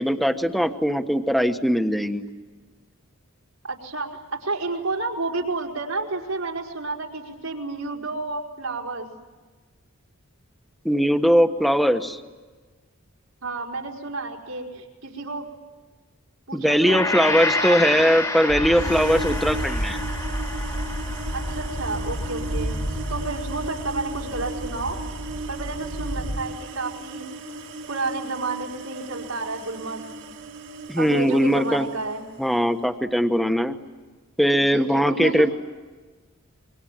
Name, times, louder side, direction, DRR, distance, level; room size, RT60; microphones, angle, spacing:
voice 1, 0.0-2.2 10.8-12.2 16.5-20.0 30.9-31.9 32.4-33.8 34.4-35.5, equal, ahead, 8 dB, 1.3 m, -20 dB
voice 2, 3.6-9.1 13.4-15.5 16.5-18.1 21.3-22.8 23.1-25.0 25.5-27.2 27.9-30.3 31.0-32.2 34.6-35.5, right 3 dB, 85° right, 1 dB, 4.8 m, -31 dB
Gong, 16.9-25.3 25.6-25.8, left 3 dB, 15° left, 1.8 m, -31 dB
sound 1, 18.5-26.4, equal, 75° left, 2.8 m, -31 dB
sound 2, 18.7-32.6, right 3 dB, 60° right, 2.2 m, -37 dB
26.5 x 24.5 x 9.2 m, 1.3 s
head